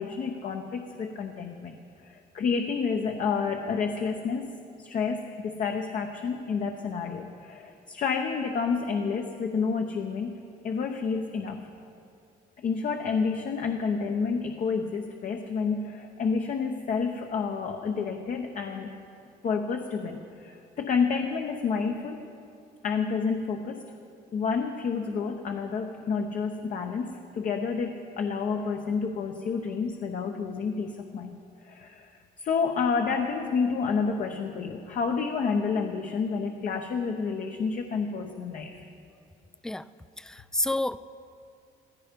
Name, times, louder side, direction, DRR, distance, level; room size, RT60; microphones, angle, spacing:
voice 1, 0.0-1.8 2.0-4.5 4.8-10.4 10.6-11.7 12.6-18.9 19.4-22.2 22.8-23.8 24.3-32.1 32.4-38.8, left 5 dB, 50° left, 4 dB, 0.9 m, -29 dB
voice 2, 40.2-41.0, left 1 dB, 5° left, 15 dB, 0.3 m, -29 dB
15.0 x 15.0 x 5.2 m, 2.5 s
cardioid pair, 110°, 17 cm